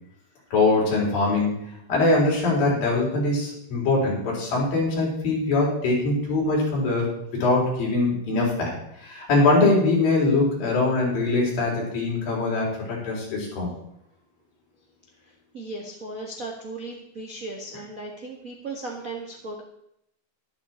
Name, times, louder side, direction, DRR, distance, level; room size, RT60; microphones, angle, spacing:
voice 1, 0.5-7.1 7.4-8.7 9.0-13.7, left 2 dB, 65° left, -3 dB, 5.8 m, -22 dB
voice 2, 15.2-19.6, right 2 dB, 65° right, -1 dB, 0.8 m, -36 dB
12.5 x 12.0 x 4.4 m, 0.77 s
omnidirectional pair, 4.4 m